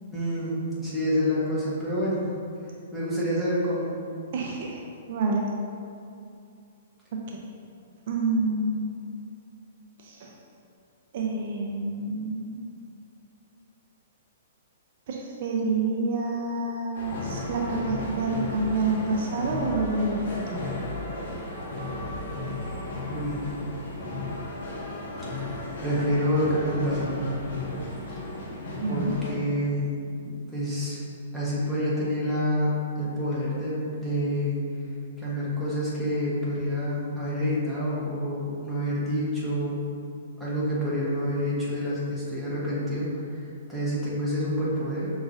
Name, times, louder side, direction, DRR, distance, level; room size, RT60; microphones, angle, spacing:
voice 1, 0.1-2.2 2.9-3.9 23.1-23.5 25.8-27.2 28.9-29.9 30.2-31.0 31.3-34.6 35.2-39.8 40.4-43.1 43.7-45.1, equal, ahead, -10 dB, 1.2 m, -27 dB
voice 2, 4.3-4.8 5.1-5.4 7.1-7.4 8.1-8.9 10.0-10.3 11.1-12.6 15.1-20.6 28.8-29.2, right 3 dB, 55° right, -1 dB, 0.5 m, -28 dB
sound 1, 16.9-29.3, left 2 dB, 55° left, 1.2 m, -34 dB
5.8 x 3.0 x 2.6 m, 2.5 s
hypercardioid pair, 130°, 0 cm